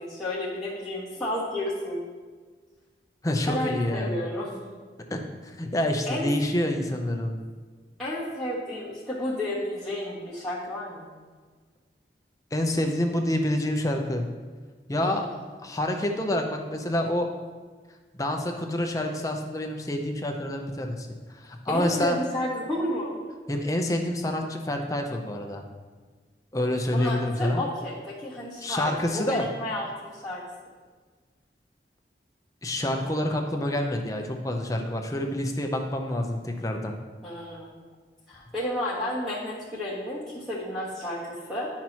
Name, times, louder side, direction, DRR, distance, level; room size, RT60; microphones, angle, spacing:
voice 1, 0.0-2.1 3.5-4.8 6.1-6.3 8.0-11.1 14.9-15.3 21.7-23.1 26.9-30.4 37.2-37.7 38.3-41.7, left 1 dB, 5° left, -11 dB, 1.4 m, -32 dB
voice 2, 3.2-4.2 5.1-7.4 12.5-14.2 14.9-15.3 15.6-17.3 18.1-21.1 21.3-22.2 23.5-25.6 26.5-27.6 28.6-29.4 32.6-36.9, left 1 dB, 20° left, 3 dB, 0.6 m, -27 dB
10.5 x 5.9 x 3.0 m, 1.5 s
head